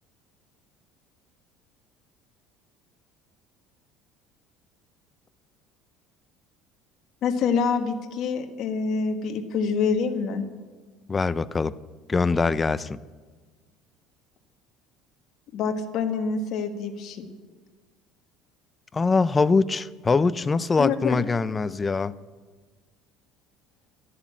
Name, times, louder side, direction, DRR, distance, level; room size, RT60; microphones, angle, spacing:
voice 1, 7.2-10.4 15.5-17.3 20.8-21.2, left 5 dB, 50° left, 6 dB, 1.4 m, -26 dB
voice 2, 11.1-11.7 12.1-13.0 18.9-22.2, left 4 dB, 20° left, 16 dB, 0.4 m, -23 dB
12.0 x 11.0 x 7.4 m, 1.4 s
cardioid pair, 135°, 0 cm